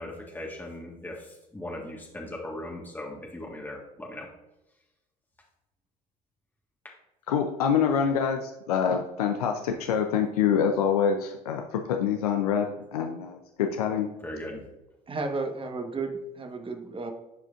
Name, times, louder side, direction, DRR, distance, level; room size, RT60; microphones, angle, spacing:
voice 1, 0.0-4.3 14.2-14.6, left 1 dB, 10° left, -1 dB, 1.6 m, -38 dB
voice 2, 7.3-14.1, left 7 dB, 85° left, 5 dB, 0.5 m, -26 dB
voice 3, 15.1-17.1, right 3 dB, 30° right, 5 dB, 1.3 m, -33 dB
11.0 x 4.9 x 2.5 m, 0.94 s
hypercardioid pair, 60°, 19 cm